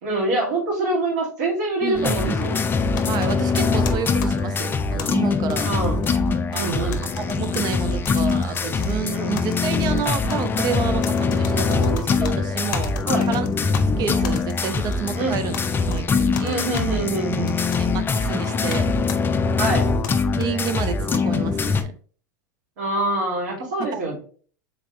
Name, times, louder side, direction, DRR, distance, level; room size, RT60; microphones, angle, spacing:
voice 1, 0.0-2.6 5.6-6.0 6.5-7.0 9.1-9.3 13.1-13.3 15.2-15.4 16.4-17.5 19.6-19.9 22.8-24.2, right 2 dB, 70° right, 2.1 m, -25 dB
voice 2, 1.8-2.4 3.1-5.7 6.5-6.9 7.2-13.0 13.2-15.5 15.8-16.6 17.8-18.9 19.6-19.9 20.3-22.0 23.6-24.1, right 7 dB, 40° right, 0.6 m, -30 dB
sound 1, 1.9-21.8, left 4 dB, 20° left, 0.5 m, -23 dB
sound 2, 3.0-5.1 5.5-6.6 6.9-7.6 8.0-8.9 9.3-10.4 11.0-12.3 12.7-13.8 14.2-15.2 15.5-16.0 16.3-16.9 17.5-17.8 18.7-18.8 19.1-19.2 19.6-20.5, left 7 dB, 65° left, 0.7 m, -36 dB
3.9 x 3.4 x 2.9 m
hypercardioid pair, 90°, 10 cm